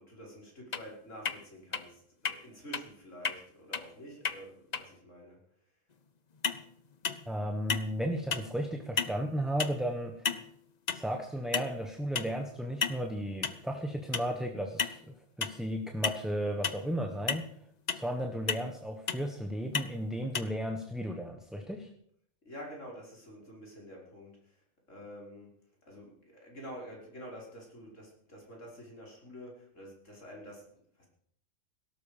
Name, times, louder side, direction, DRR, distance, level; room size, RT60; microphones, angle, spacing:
voice 1, 0.0-5.4 16.8-17.1 22.4-25.6 25.9-31.1, equal, 90° left, -2 dB, 5.8 m, -48 dB
sound 1, 0.7-0.8 1.2-1.4 1.7-1.8 2.2-2.4 2.7-2.8 3.2-3.4 3.7-3.8 4.2-4.4 4.7-4.8 6.4-6.6 7.0-7.3 7.7-8.0 8.3-8.5 9.0-9.2 9.6-9.8 10.2-10.5 10.9-11.1 11.5-11.8 12.2-12.3 12.8-13.0 13.4-13.6 14.1-14.3 14.8-15.0 15.4-15.6 16.0-16.2 16.6-16.8 17.3-17.4 17.9-18.1 18.5-18.7 19.1-19.2 19.7-19.9 20.3-20.4, left 6 dB, 40° left, 0.9 m, -32 dB
voice 2, 7.3-10.3 10.9-17.4 17.9-21.9, equal, ahead, 4 dB, 1.3 m, -34 dB
17.0 x 13.0 x 5.3 m, 0.66 s
omnidirectional pair, 1.3 m